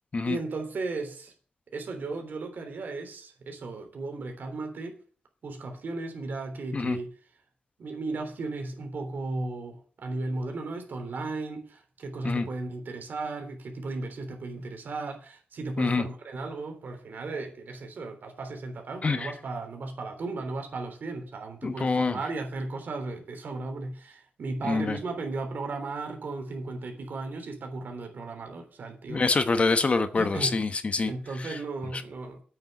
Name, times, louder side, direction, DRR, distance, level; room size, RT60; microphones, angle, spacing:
voice 1, 0.3-1.3 1.7-5.0 5.4-7.1 7.8-29.2 30.1-30.6 31.1-32.4, right 3 dB, 80° right, 4 dB, 3.6 m, -35 dB
voice 2, 19.0-19.3 21.6-22.2 24.7-25.0 29.1-31.1 31.4-31.5, left 4 dB, 40° left, 10 dB, 1.2 m, -25 dB
8.9 x 7.0 x 8.2 m, 0.42 s
wide cardioid pair, 120°, 3 cm